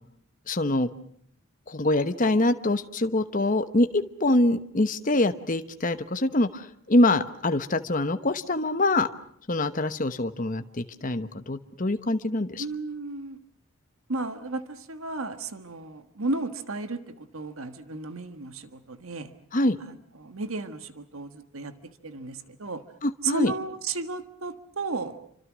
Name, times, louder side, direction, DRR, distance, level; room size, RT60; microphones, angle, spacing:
voice 1, 0.5-0.9 1.7-9.1 9.5-12.6 19.5-19.8 23.0-23.5, left 2 dB, 40° left, 9 dB, 1.1 m, -24 dB
voice 2, 12.6-13.4 14.1-19.3 19.8-21.7 22.0-22.8 23.2-25.2, right 3 dB, 75° right, 10 dB, 1.5 m, -34 dB
28.5 x 25.5 x 6.2 m, 0.66 s
head